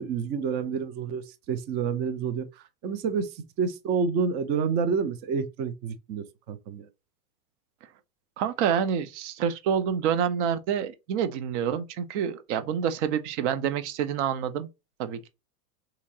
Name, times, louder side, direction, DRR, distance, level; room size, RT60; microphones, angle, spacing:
voice 1, 0.0-6.9, right 6 dB, 25° right, 0.4 m, -29 dB
voice 2, 8.4-14.7 15.0-15.3, right 8 dB, 50° right, 0.8 m, -27 dB
3.7 x 2.9 x 2.7 m
hypercardioid pair, 125°, 45 cm